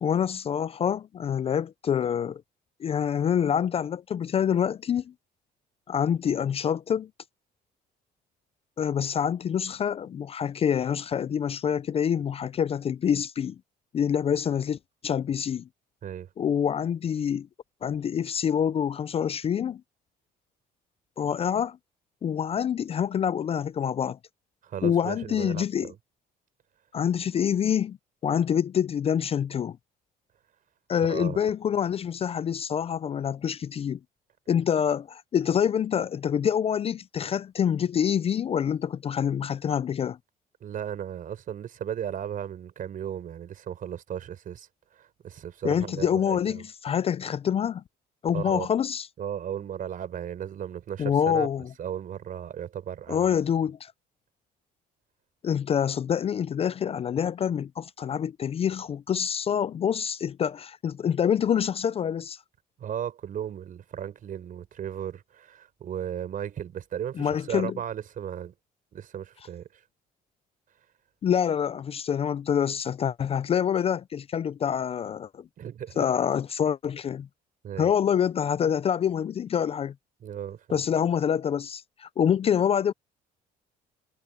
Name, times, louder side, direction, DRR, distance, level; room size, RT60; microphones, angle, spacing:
voice 1, 0.0-2.4 2.8-5.1 5.9-7.1 8.8-13.6 13.9-14.8 15.0-15.7 16.4-17.5 17.8-19.8 21.2-21.8 22.2-24.2 24.8-25.9 26.9-28.0 28.2-29.8 30.9-34.0 34.5-40.2 45.6-47.8 48.2-49.1 51.0-51.7 53.1-53.9 55.4-62.4 67.2-67.7 71.2-75.4 76.0-77.3 77.8-79.9 80.7-82.9, left 8 dB, 35° left, 0.4 m, -26 dB
voice 2, 24.6-26.0 31.1-31.5 40.6-44.7 44.9-46.6 48.3-48.7 49.2-51.5 51.8-53.4 62.8-68.5 68.9-69.8 75.6-76.1 77.6-77.9 80.2-80.8, right 9 dB, 55° right, 4.6 m, -35 dB
cardioid pair, 110°, 17 cm